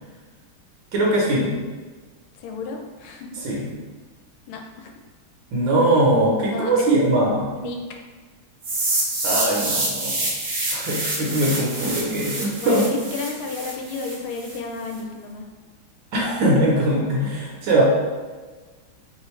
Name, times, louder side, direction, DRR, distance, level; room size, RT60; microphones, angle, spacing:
voice 1, 0.9-1.6 3.4-3.7 5.5-7.5 9.2-10.3 10.7-12.8 16.1-17.8, right 1 dB, 65° right, -3 dB, 1.6 m, -21 dB
voice 2, 2.4-3.3 4.5-4.9 6.4-6.9 7.5-7.8 11.1-11.3 12.3-15.5, left 3 dB, 80° left, 2 dB, 1.3 m, -32 dB
sound 1, 8.6-14.6, right 2 dB, 50° right, 1.2 m, -27 dB
3.9 x 3.6 x 3.1 m, 1.4 s
omnidirectional pair, 2.3 m